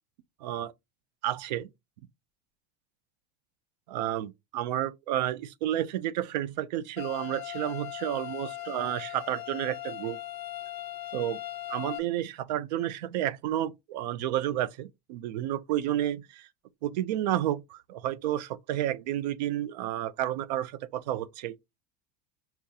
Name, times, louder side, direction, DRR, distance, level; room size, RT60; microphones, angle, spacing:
voice 1, 0.4-0.7 1.2-1.7 3.9-10.2 11.1-11.4 11.7-16.5 16.8-21.5, right 12 dB, 85° right, 0.5 m, -31 dB
sound 1, 7.0-12.0, left 14 dB, 65° left, 0.7 m, -39 dB
5.6 x 2.4 x 2.7 m
supercardioid pair, 175°, 21 cm